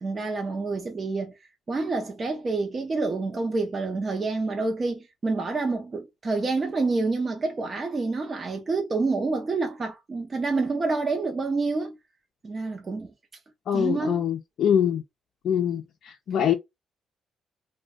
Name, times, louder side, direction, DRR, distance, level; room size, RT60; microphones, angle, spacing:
voice 1, 0.0-1.3 1.7-12.0 12.4-13.1 13.7-14.2, right 3 dB, 35° right, 0.6 m, -28 dB
voice 2, 13.7-15.0 15.4-16.5, left 9 dB, 65° left, 0.4 m, -24 dB
2.4 x 2.1 x 3.6 m
cardioid pair, 90°, 0 cm